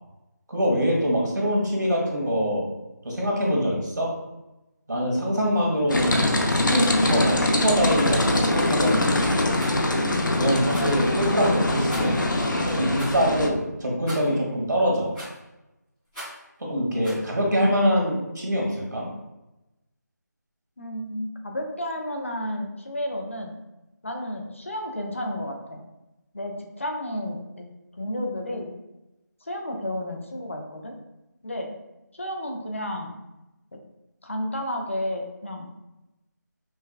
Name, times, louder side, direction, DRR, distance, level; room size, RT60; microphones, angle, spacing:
voice 1, 0.5-2.6 3.0-4.1 4.9-9.5 10.3-12.2 12.6-15.1 16.6-19.1, equal, 75° right, -2 dB, 1.4 m, -24 dB
sound 1, 5.9-13.5, left 1 dB, 85° left, 0.6 m, -23 dB
Rattle, 9.5-9.8 10.7-11.0 11.9-12.2 12.9-13.2 14.1-14.4 15.1-15.5 16.1-16.4 17.0-17.2, right 1 dB, 5° left, 0.7 m, -39 dB
voice 2, 17.4-17.8 20.8-23.5 24.0-25.8 26.3-27.6 28.0-28.7 29.4-31.0 31.4-31.7 32.2-33.2 33.7-33.8 34.2-35.7, left 1 dB, 40° left, 2 dB, 0.5 m, -32 dB
5.4 x 2.2 x 2.3 m, 0.97 s
figure-of-eight pair, 175°, 10 cm